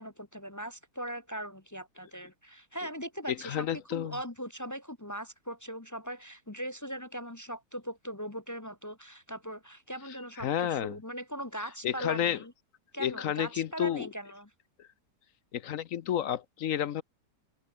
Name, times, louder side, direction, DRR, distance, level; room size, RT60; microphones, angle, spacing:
voice 1, 0.0-12.5 12.9-14.5, equal, 15° left, 0.7 m, -40 dB
voice 2, 3.3-4.2 10.4-11.0 11.8-12.4 13.0-14.1 14.8-14.9 15.5-17.0, left 10 dB, 60° left, 1.0 m, -31 dB
omnidirectional pair, 1.8 m